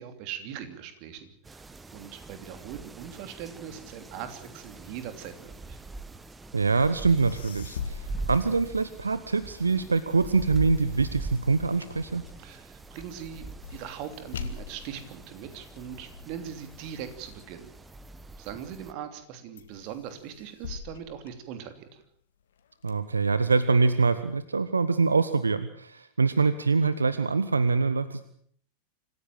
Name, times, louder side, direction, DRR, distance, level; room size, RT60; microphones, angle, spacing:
voice 1, 0.0-1.6 1.9-5.8 12.4-17.7 18.4-22.0, right 9 dB, 45° right, 9 dB, 3.0 m, -41 dB
sound 1, 1.4-18.9, right 3 dB, 10° right, 1.2 m, -43 dB
voice 2, 6.5-12.2 22.8-28.2, right 4 dB, 75° right, 14 dB, 0.9 m, -24 dB
sound 2, 7.2-9.3 9.7-18.4 18.9-19.3 19.6-22.1 22.5-23.5, left 6 dB, 60° left, 2.1 m, -44 dB
26.0 x 15.5 x 7.5 m, 0.63 s
figure-of-eight pair, 90°, 0 cm